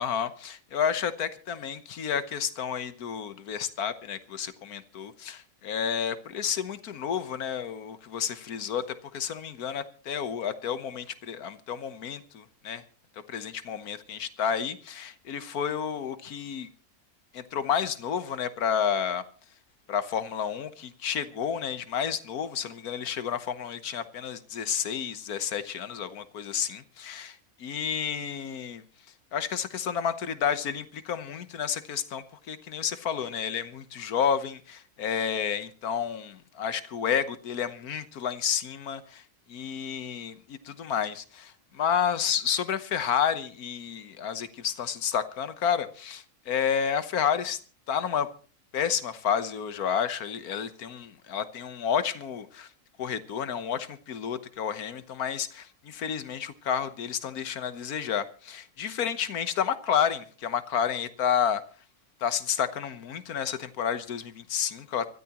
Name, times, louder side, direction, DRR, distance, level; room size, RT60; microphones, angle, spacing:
voice 1, 0.0-12.8 13.3-16.7 17.3-19.2 19.9-28.8 29.3-39.2 39.5-47.6 47.9-48.3 48.7-52.7 53.0-61.6 62.2-65.1, left 8 dB, 80° left, 12 dB, 1.6 m, -30 dB
24.5 x 13.5 x 3.0 m, 0.38 s
omnidirectional pair, 1.6 m